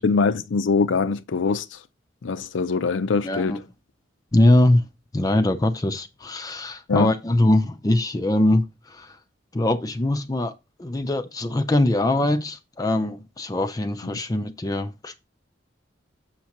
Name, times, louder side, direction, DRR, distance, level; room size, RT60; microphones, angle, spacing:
voice 1, 0.0-1.8 2.2-3.6 6.9-7.1, left 4 dB, 80° left, 0.5 m, -23 dB
voice 2, 3.2-3.6 4.3-4.8 5.1-9.2 9.5-10.5 10.8-15.2, left 1 dB, 20° left, 0.4 m, -22 dB
7.2 x 5.9 x 2.9 m
head